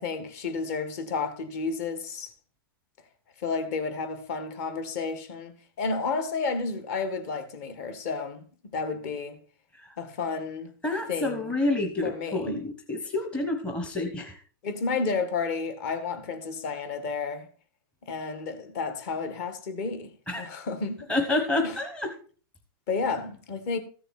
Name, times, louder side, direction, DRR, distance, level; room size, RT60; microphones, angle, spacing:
voice 1, 0.0-2.3 3.4-8.4 8.7-9.4 10.0-10.7 11.1-11.5 12.0-12.6 14.6-17.5 18.1-21.1 21.6-21.8 22.9-23.8, left 4 dB, 40° left, 1.8 m, -31 dB
voice 2, 10.8-14.4 20.3-20.4 21.1-22.1, left 2 dB, 10° left, 1.0 m, -28 dB
14.0 x 6.8 x 4.4 m
hypercardioid pair, 155°, 12 cm